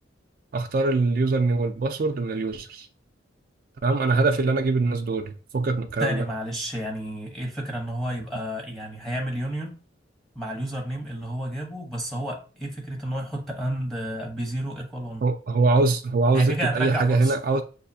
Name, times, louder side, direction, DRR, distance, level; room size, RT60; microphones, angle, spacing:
voice 1, 0.5-2.9 3.8-6.2 15.2-17.6, right 3 dB, 50° right, 0.4 m, -23 dB
voice 2, 6.0-9.8 10.3-15.2 16.3-17.4, right 1 dB, ahead, 0.9 m, -30 dB
6.4 x 2.6 x 2.7 m
head